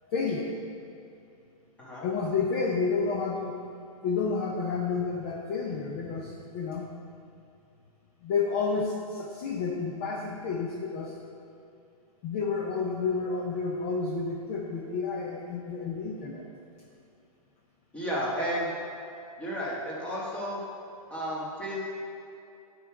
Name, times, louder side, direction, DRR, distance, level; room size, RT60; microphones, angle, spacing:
voice 1, 0.1-0.6 2.0-3.7 4.0-6.9 8.2-11.2 12.2-16.4, left 4 dB, 25° left, 0 dB, 0.5 m, -30 dB
voice 2, 17.9-18.7 19.4-20.6 21.1-21.8, equal, 5° left, -7 dB, 1.2 m, -32 dB
10.0 x 4.6 x 4.7 m, 2.6 s
hypercardioid pair, 170°, 19 cm